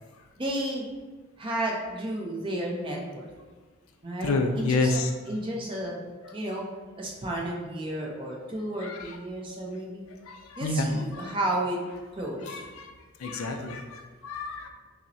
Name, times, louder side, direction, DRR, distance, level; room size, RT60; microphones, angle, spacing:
voice 1, 0.4-0.9 1.4-3.3 4.0-4.9 5.3-5.9 6.3-6.7 7.0-10.0 10.6-11.8 12.1-12.6, right 1 dB, 20° right, -2 dB, 0.5 m, -32 dB
voice 2, 4.2-5.1 8.8-9.1 10.3-10.9 11.1-11.3 12.5-12.9 13.2-14.7, left 3 dB, 70° left, 5 dB, 0.4 m, -29 dB
5.4 x 2.1 x 2.7 m, 1.3 s
head